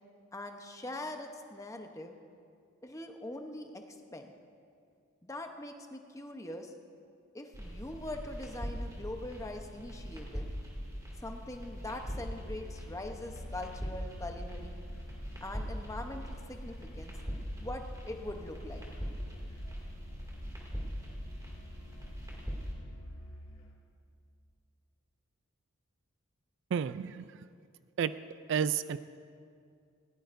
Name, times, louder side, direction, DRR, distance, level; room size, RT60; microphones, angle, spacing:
voice 1, 0.3-2.1 2.8-3.8 4.1-4.3 5.2-6.7 7.3-10.5 11.2-14.8 15.4-17.1 17.6-18.8, left 1 dB, 15° left, 4 dB, 0.9 m, -42 dB
sound 1, 7.5-22.7, equal, 15° right, 2.4 m, -41 dB
Musical instrument, 12.0-23.8, left 1 dB, 75° left, 2.2 m, -51 dB
voice 2, 26.7-27.2 28.0-28.1 28.5-29.0, right 7 dB, 60° right, 14 dB, 0.3 m, -30 dB
19.5 x 17.0 x 2.6 m, 2.3 s
head